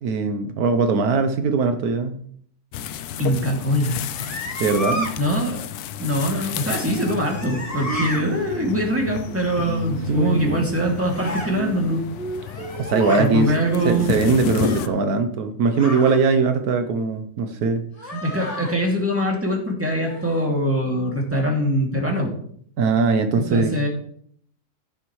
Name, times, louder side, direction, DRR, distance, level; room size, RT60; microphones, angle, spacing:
voice 1, 0.0-2.2 4.6-5.1 9.6-9.7 10.1-10.4 12.8-13.5 13.8-17.8 22.8-23.7, right 4 dB, 80° right, 8 dB, 1.3 m, -21 dB
sound 1, 2.7-14.9, left 9 dB, 85° left, 1.1 m, -32 dB
voice 2, 3.2-4.0 5.2-5.6 6.0-12.0 13.2-14.1 18.1-22.3 23.3-23.9, equal, 10° right, -1 dB, 2.4 m, -23 dB
sound 2, 4.0-5.1 6.8-8.2 11.1-11.5 12.4-13.3 14.6-15.0 15.7-16.2 18.0-18.7 20.0-20.5, left 1 dB, 25° left, 1.5 m, -32 dB
Singing, 7.9-15.1, right 5 dB, 45° right, 0.9 m, -35 dB
14.5 x 7.4 x 3.2 m, 0.62 s
omnidirectional pair, 1.6 m